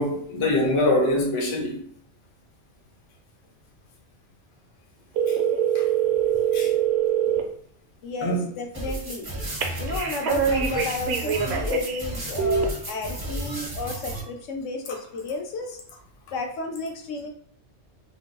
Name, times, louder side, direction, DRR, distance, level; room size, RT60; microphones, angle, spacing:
voice 1, 0.0-1.8 5.3-5.4 5.7-5.8 6.5-6.7 8.2-8.5 9.6-9.8 10.4-10.5 14.9-15.0, left 1 dB, 35° left, 0.5 m, -24 dB
sound 1, 5.2-7.4 9.6-12.0 12.4-12.6, right 9 dB, 65° right, 0.8 m, -24 dB
voice 2, 8.0-9.3 9.8-15.8 16.3-17.3, left 3 dB, 75° left, 0.9 m, -32 dB
sound 2, 8.7-14.2, right 1 dB, 25° right, 0.5 m, -33 dB
2.6 x 2.2 x 3.9 m
omnidirectional pair, 1.3 m